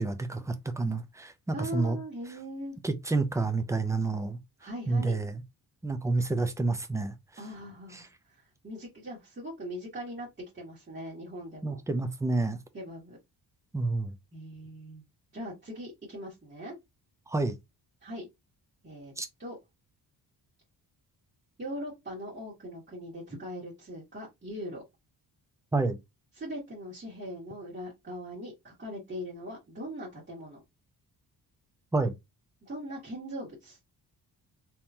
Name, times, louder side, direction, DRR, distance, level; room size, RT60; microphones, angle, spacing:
voice 1, 0.0-2.0 2.8-4.4 4.9-5.4 5.8-7.1 7.9-8.0 11.6-12.6 13.7-14.2 17.3-17.6 19.2-19.3 25.7-26.0 31.9-32.1, right 3 dB, 10° right, 0.4 m, -29 dB
voice 2, 1.5-2.8 4.6-5.2 7.4-8.4 8.6-10.3 10.5-11.8 12.7-13.2 14.3-15.0 15.3-16.7 18.0-18.3 18.8-19.1 19.4-19.6 21.6-24.8 26.4-30.6 32.6-33.8, equal, 25° right, 1.8 m, -40 dB
3.6 x 2.9 x 2.7 m
wide cardioid pair, 145°, 41 cm